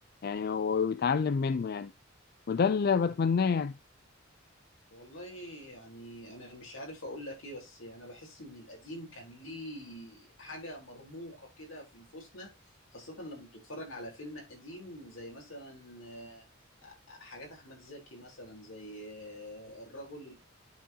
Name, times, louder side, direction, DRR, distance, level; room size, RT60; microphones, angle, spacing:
voice 1, 0.2-1.9 2.5-3.7, left 5 dB, 50° left, 0.4 m, -27 dB
voice 2, 4.9-12.5 12.9-16.5 16.8-20.3, equal, 80° left, 4.0 m, -45 dB
10.5 x 4.5 x 2.9 m
head